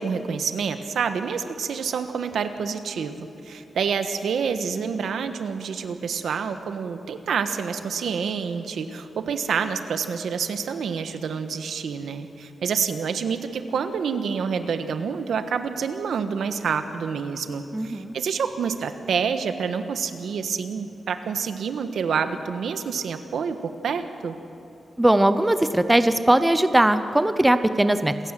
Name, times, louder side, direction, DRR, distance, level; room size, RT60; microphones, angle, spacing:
voice 1, 0.0-24.4, right 6 dB, 80° right, 9 dB, 1.3 m, -28 dB
voice 2, 17.7-18.1 25.0-28.1, right 1 dB, 10° right, 11 dB, 0.7 m, -19 dB
28.0 x 16.0 x 7.5 m, 2.9 s
wide cardioid pair, 165°, 0 cm